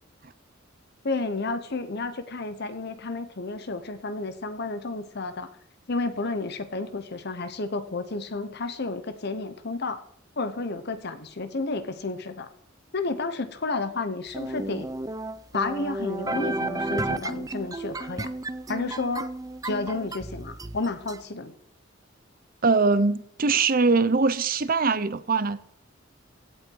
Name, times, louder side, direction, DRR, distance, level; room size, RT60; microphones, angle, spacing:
voice 1, 1.0-5.5 5.9-10.0 10.4-12.5 12.9-14.9 15.5-18.3 18.7-19.3 19.6-21.5, left 3 dB, 55° left, 1.0 m, -31 dB
sound 1, 14.3-21.2, right 2 dB, 20° right, 0.5 m, -32 dB
voice 2, 22.6-25.6, right 4 dB, 45° right, 0.8 m, -22 dB
16.5 x 7.9 x 4.7 m
head